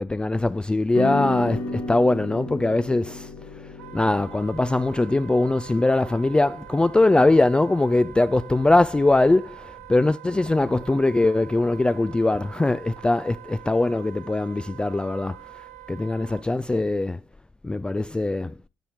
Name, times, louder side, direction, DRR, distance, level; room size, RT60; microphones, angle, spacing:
voice 1, 0.0-3.3 3.9-15.4 15.9-17.2 17.6-18.6, left 2 dB, 10° left, 0.3 m, -21 dB
sound 1, 0.9-9.5, left 2 dB, 65° left, 1.5 m, -36 dB
Wind instrument woodwind instrument, 3.8-16.5, right 16 dB, 80° right, 0.5 m, -44 dB
14.0 x 5.5 x 3.0 m
figure-of-eight pair, 45°, 8 cm